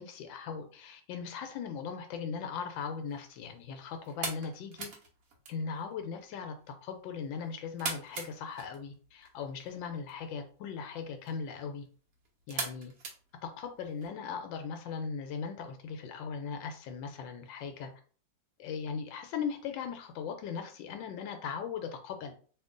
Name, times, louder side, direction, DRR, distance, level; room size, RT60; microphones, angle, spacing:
voice 1, 0.0-4.9 5.5-6.5 6.8-11.9 12.5-12.9 13.4-17.9 18.6-22.3, left 6 dB, 80° left, 6 dB, 1.3 m, -39 dB
sound 1, 2.7-14.1, right 4 dB, 55° right, 1.1 m, -44 dB
2.9 x 2.7 x 3.6 m, 0.42 s
omnidirectional pair, 2.0 m